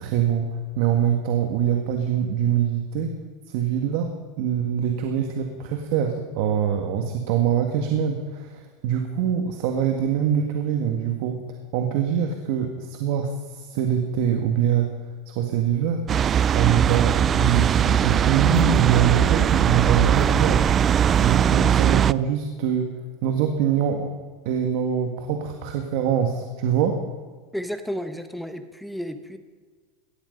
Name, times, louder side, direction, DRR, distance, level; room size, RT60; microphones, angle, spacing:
voice 1, 0.0-3.1 3.5-11.4 11.7-14.9 15.3-16.0 16.5-20.7 21.2-22.9 23.2-24.1 24.4-27.0, right 8 dB, 65° right, 4 dB, 1.7 m, -24 dB
sound 1, 16.1-22.1, right 9 dB, 30° right, 0.3 m, -20 dB
voice 2, 27.5-29.4, equal, ahead, 9 dB, 1.0 m, -32 dB
18.0 x 13.5 x 5.3 m, 1.5 s
supercardioid pair, 125°, 0 cm